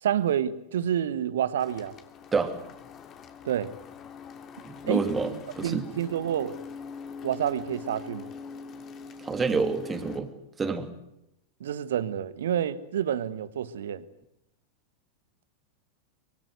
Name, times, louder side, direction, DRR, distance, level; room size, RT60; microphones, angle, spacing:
voice 1, 0.0-1.9 3.4-3.7 4.9-6.6 7.2-8.3 11.6-14.0, right 10 dB, 60° right, 1.4 m, -29 dB
sound 1, 1.6-10.2, left 5 dB, 30° left, 2.8 m, -43 dB
voice 2, 4.6-5.9 9.2-10.3 10.6-10.9, right 4 dB, 15° right, 2.8 m, -28 dB
24.5 x 23.5 x 8.0 m
figure-of-eight pair, 90°, 0 cm